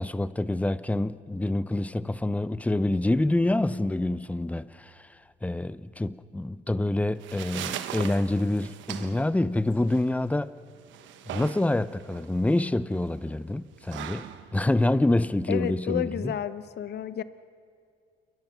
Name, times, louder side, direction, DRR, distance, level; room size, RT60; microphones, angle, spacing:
voice 1, 0.0-4.9 5.4-10.5 11.3-14.3 14.5-16.3, left 1 dB, 5° left, 0.7 m, -26 dB
sound 1, 6.9-15.9, right 11 dB, 70° right, 1.2 m, -41 dB
voice 2, 15.5-17.2, left 10 dB, 55° left, 1.0 m, -31 dB
28.5 x 22.0 x 5.9 m
cardioid pair, 90°, 20 cm